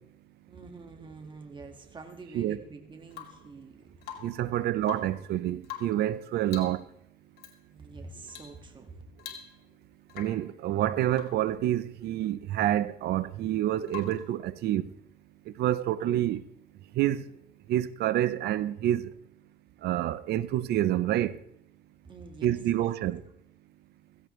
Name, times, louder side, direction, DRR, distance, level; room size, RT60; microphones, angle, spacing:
voice 1, 0.4-3.9 7.7-9.0 22.0-22.6 22.8-22.9, right 3 dB, 30° right, 1.9 m, -46 dB
Rain / Water tap faucet / Drip, 3.1-3.5 4.0-4.5 4.8-5.2 5.6-6.1 6.5-6.8 7.4-7.6 8.3-8.6 8.8-8.9 9.2-9.8 10.1-10.5 11.1-11.5 13.9-14.3 16.2-16.3, left 10 dB, 70° left, 2.7 m, -44 dB
voice 2, 4.2-6.8 10.1-14.9 15.6-16.4 16.9-17.2 17.7-19.1 19.8-21.4 22.4-23.2, right 12 dB, 75° right, 0.7 m, -28 dB
16.5 x 15.5 x 3.2 m
cardioid pair, 110°, 17 cm